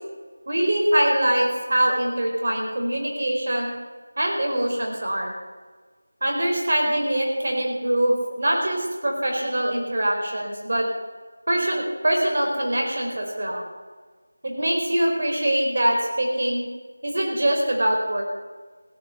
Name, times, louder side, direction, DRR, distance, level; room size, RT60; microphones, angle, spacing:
voice 1, 0.5-3.7 4.2-5.3 6.2-10.9 11.5-13.6 14.4-16.7 17.0-18.2, right 1 dB, 50° right, 0 dB, 4.4 m, -23 dB
16.5 x 10.5 x 7.1 m, 1.4 s
figure-of-eight pair, 170°, 0 cm